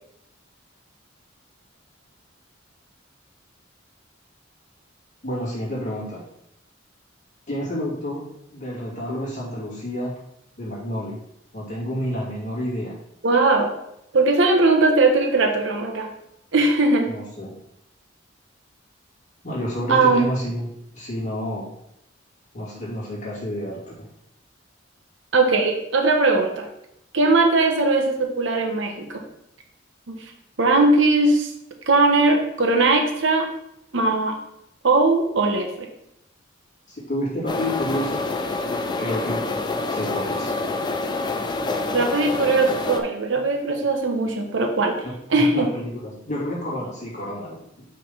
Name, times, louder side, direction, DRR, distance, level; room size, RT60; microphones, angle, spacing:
voice 1, 5.2-6.2 7.5-8.3 8.5-10.1 10.6-11.2 11.5-13.0 17.0-17.5 19.4-20.7 20.9-21.7 22.5-24.1 36.9-38.3 39.0-39.5 39.9-40.5 45.0-47.8, equal, 40° left, -6 dB, 2.4 m, -29 dB
voice 2, 13.2-13.7 14.1-16.1 16.5-17.1 19.9-20.3 25.3-26.7 27.1-29.2 30.1-30.2 30.6-31.5 31.9-33.5 33.9-34.4 34.8-35.9 41.9-45.0 45.3-45.7, right 3 dB, 65° right, 3 dB, 0.9 m, -19 dB
sound 1, 37.5-43.0, left 3 dB, 20° left, 0.4 m, -27 dB
5.6 x 3.5 x 5.5 m, 0.79 s
head